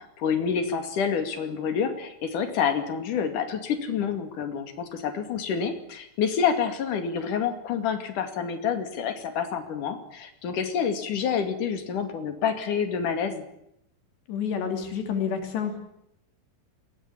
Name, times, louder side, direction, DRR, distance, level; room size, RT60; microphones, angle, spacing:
voice 1, 0.0-13.4, left 7 dB, 55° left, 7 dB, 3.6 m, -28 dB
voice 2, 14.3-15.8, left 7 dB, 90° left, 5 dB, 5.1 m, -29 dB
21.5 x 18.0 x 8.7 m, 0.78 s
omnidirectional pair, 4.8 m